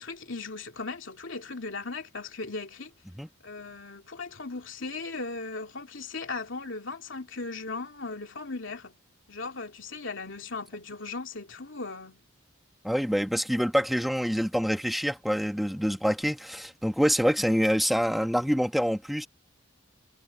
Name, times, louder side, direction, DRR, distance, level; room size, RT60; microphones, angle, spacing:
voice 1, 0.0-2.9 3.4-9.0 9.3-12.2, left 3 dB, 65° left, 2.9 m, -37 dB
voice 2, 12.8-19.3, equal, ahead, 1.2 m, -26 dB
head